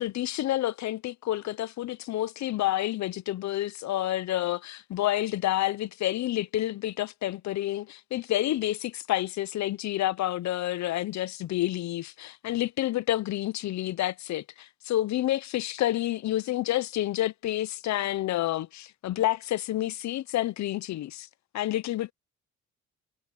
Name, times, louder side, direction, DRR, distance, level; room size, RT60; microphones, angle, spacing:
voice 1, 0.0-21.3 21.5-22.1, left 14 dB, 65° left, 0.7 m, -29 dB
cardioid pair, 90°, 30 cm